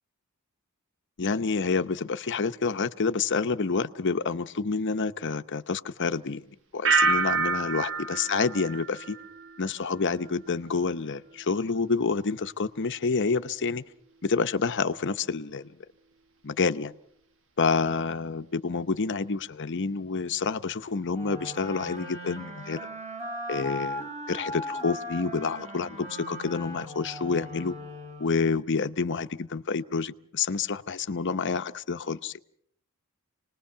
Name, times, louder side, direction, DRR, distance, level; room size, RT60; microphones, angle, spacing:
voice 1, 1.2-6.4 6.7-9.2 9.6-13.8 14.2-15.7 16.4-17.0 17.6-22.9 23.5-27.7 28.2-32.3, left 4 dB, 55° left, 10 dB, 0.8 m, -28 dB
sound 1, 6.8-9.7 10.0-10.5, right 4 dB, 60° right, 1.6 m, -27 dB
sound 2, 21.1-28.6, equal, 30° right, 4.0 m, -38 dB
28.0 x 20.0 x 5.7 m, 0.68 s
head